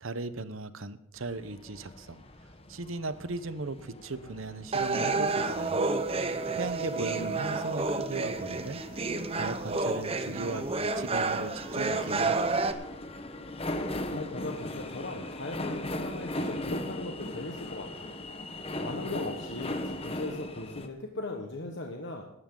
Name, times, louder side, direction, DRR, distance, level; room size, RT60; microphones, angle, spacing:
voice 1, 0.0-2.2 2.7-5.8 6.2-12.8, right 3 dB, 75° right, 13 dB, 1.0 m, -38 dB
sound 1, 1.1-20.9, left 1 dB, 30° left, 1.1 m, -39 dB
sound 2, 4.7-12.7, right 3 dB, 30° right, 0.9 m, -30 dB
voice 2, 14.1-18.1 18.8-22.2, left 2 dB, 55° left, 2 dB, 1.4 m, -38 dB
17.5 x 12.5 x 3.9 m, 0.85 s
head